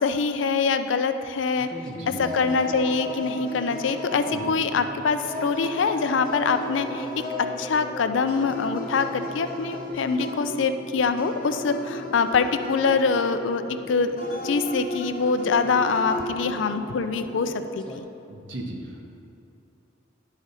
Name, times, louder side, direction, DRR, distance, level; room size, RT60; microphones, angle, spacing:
voice 1, 0.0-1.7 2.2-13.6 13.9-18.0, left 5 dB, 70° left, 9 dB, 0.4 m, -24 dB
sound 1, 1.5-18.0, equal, 5° left, 0.7 m, -40 dB
voice 2, 1.8-2.2 4.3-4.5 18.3-19.1, right 1 dB, 70° right, 0 dB, 1.2 m, -37 dB
sound 2, 2.2-4.8 5.3-7.7 8.3-10.8 11.2-13.6 14.2-16.6, left 1 dB, 50° left, 1.4 m, -35 dB
11.0 x 4.9 x 4.1 m, 2.7 s
head